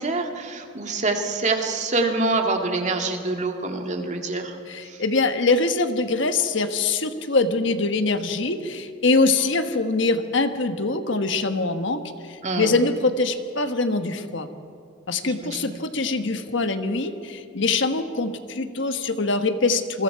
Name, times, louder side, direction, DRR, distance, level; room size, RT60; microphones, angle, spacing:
voice 1, 0.0-4.6 4.8-5.0 12.4-12.7 15.2-15.7, right 3 dB, 35° right, 3 dB, 2.1 m, -26 dB
voice 2, 4.7-14.5 15.1-20.0, left 3 dB, 60° left, 8 dB, 1.3 m, -23 dB
28.0 x 22.5 x 4.7 m, 2.4 s
head